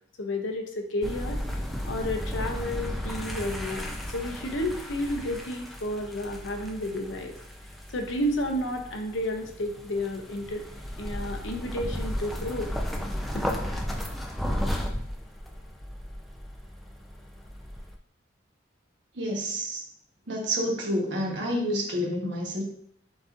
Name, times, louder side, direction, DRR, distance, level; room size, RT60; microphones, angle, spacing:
voice 1, 0.2-1.4 1.8-7.4 7.9-10.6 11.0-12.7 13.3-13.4, left 1 dB, 75° left, 4 dB, 0.7 m, -31 dB
sound 1, 1.0-18.0, equal, ahead, 0.4 m, -34 dB
voice 2, 19.1-19.8 20.3-22.6, equal, 65° right, -1 dB, 1.2 m, -29 dB
7.8 x 2.6 x 2.5 m, 0.66 s
head